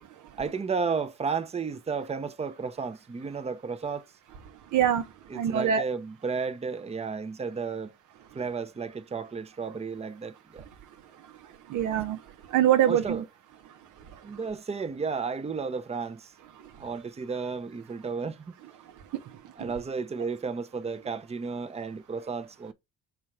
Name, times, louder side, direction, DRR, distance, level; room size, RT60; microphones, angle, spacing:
voice 1, 0.4-4.0 5.3-7.9 8.3-10.7 12.9-13.3 14.2-16.3 16.8-18.6 19.6-22.7, right 5 dB, 20° right, 0.7 m, -33 dB
voice 2, 4.7-5.8 11.7-12.2 12.5-13.2 14.1-14.2 16.6-16.7 19.1-19.4, right 10 dB, 80° right, 1.0 m, -25 dB
5.7 x 4.6 x 3.7 m
cardioid pair, 90°, 30 cm